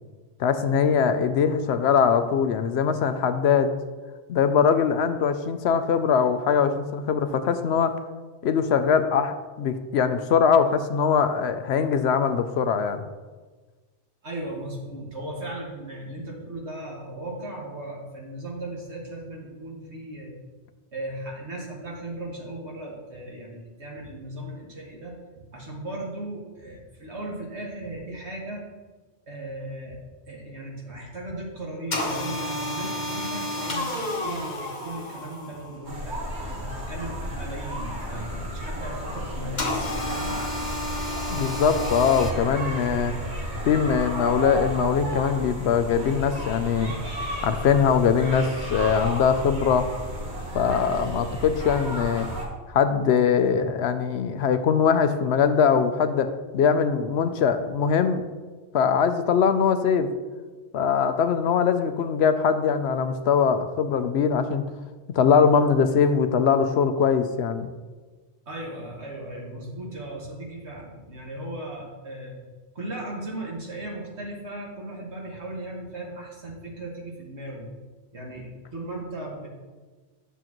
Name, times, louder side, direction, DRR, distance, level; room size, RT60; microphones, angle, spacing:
voice 1, 0.4-3.7 4.3-7.9 8.4-13.0 41.3-43.1 43.7-46.9 47.4-49.9 50.5-52.3 52.7-58.3 58.7-60.1 60.7-64.6 65.1-67.7, left 6 dB, 75° left, 9 dB, 0.8 m, -22 dB
voice 2, 14.2-20.3 20.9-25.1 25.5-28.6 29.3-30.0 30.3-40.4 50.9-51.1 68.5-72.4 72.7-77.7 78.1-79.5, right 1 dB, 80° right, -2 dB, 2.1 m, -37 dB
sound 1, 31.9-35.8 39.6-42.3, left 1 dB, 45° left, 1.2 m, -31 dB
sound 2, 35.8-52.5, equal, 45° right, 1.6 m, -33 dB
9.9 x 6.7 x 3.0 m, 1.3 s
omnidirectional pair, 1.1 m